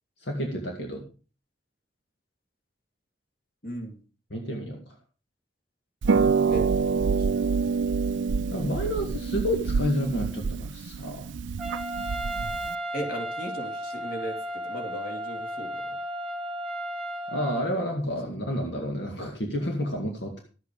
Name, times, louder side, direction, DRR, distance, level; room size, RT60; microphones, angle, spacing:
voice 1, 0.2-1.0 4.3-4.8 8.5-11.3 17.3-20.4, equal, 70° left, 2 dB, 2.2 m, -30 dB
voice 2, 3.6-4.0 6.4-6.7 7.1-7.4 12.9-14.4 14.6-16.0 18.2-18.4, right 1 dB, 55° left, 3 dB, 3.0 m, -36 dB
Harp, 6.0-12.8, right 5 dB, 75° right, 0.5 m, -26 dB
Trumpet, 11.6-17.7, equal, 5° right, 1.5 m, -34 dB
13.0 x 8.4 x 5.0 m, 0.35 s
head